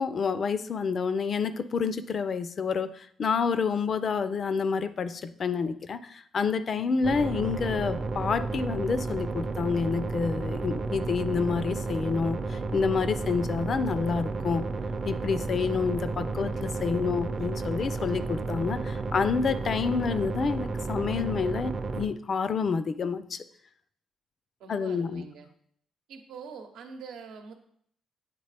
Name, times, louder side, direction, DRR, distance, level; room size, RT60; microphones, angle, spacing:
voice 1, 0.0-14.7 15.1-23.4 24.7-25.3, left 5 dB, 50° left, 12 dB, 0.4 m, -28 dB
sound 1, 7.0-22.1, right 3 dB, 40° right, 0.5 m, -32 dB
voice 2, 24.6-25.5 26.1-27.5, right 5 dB, 85° right, 5 dB, 0.8 m, -44 dB
8.2 x 3.6 x 3.3 m, 0.65 s
cardioid pair, 90°, 0 cm